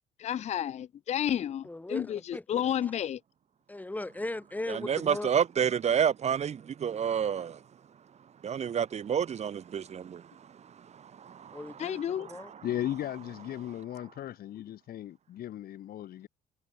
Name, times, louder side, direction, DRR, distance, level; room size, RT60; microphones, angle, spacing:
voice 1, 0.2-3.2 11.8-12.3, left 10 dB, 40° left, 0.6 m, -31 dB
voice 2, 1.6-2.4 2.8-2.9 3.7-5.3 11.5-12.5, left 2 dB, 10° left, 4.2 m, -38 dB
voice 3, 4.7-7.6 8.4-12.6, right 8 dB, 40° right, 1.4 m, -30 dB
voice 4, 12.6-16.3, left 12 dB, 65° left, 3.2 m, -36 dB
cardioid pair, 110°, 17 cm